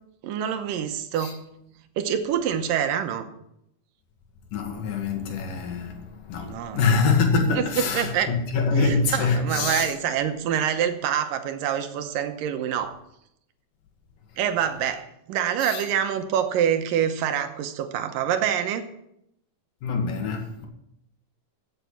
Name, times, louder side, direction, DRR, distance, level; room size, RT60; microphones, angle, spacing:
voice 1, 0.2-1.4 2.0-3.3 6.4-6.8 7.5-7.6 7.9-8.3 8.8-13.0 14.4-18.9, right 9 dB, 90° right, 2.7 m, -26 dB
voice 2, 4.5-9.9 15.6-15.9 19.8-20.7, left 4 dB, 75° left, 3.4 m, -25 dB
15.0 x 7.4 x 5.8 m
omnidirectional pair, 3.9 m